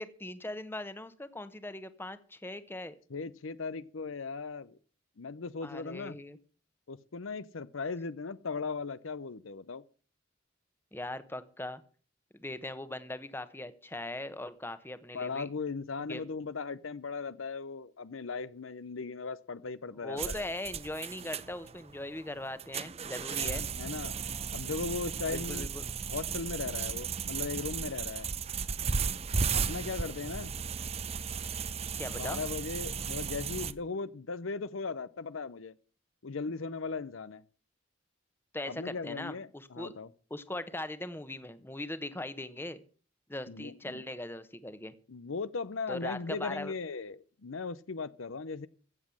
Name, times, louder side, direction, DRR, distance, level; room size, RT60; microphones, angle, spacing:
voice 1, 0.0-2.9 5.6-6.4 10.9-11.8 12.3-15.5 16.1-16.2 20.0-23.6 25.3-25.8 32.0-32.4 38.5-39.9 40.3-42.8 43.3-44.9 45.9-46.7, left 1 dB, 10° left, 1.0 m, -40 dB
voice 2, 3.1-4.8 5.2-6.2 6.9-9.8 15.1-20.4 23.4-24.1 24.5-25.7 26.1-28.3 29.5-30.5 32.2-35.8 36.2-37.4 38.7-40.1 43.5-44.0 45.1-48.7, left 4 dB, 85° left, 0.7 m, -38 dB
sound 1, 20.2-33.7, right 6 dB, 30° right, 0.6 m, -35 dB
15.5 x 7.4 x 7.7 m
head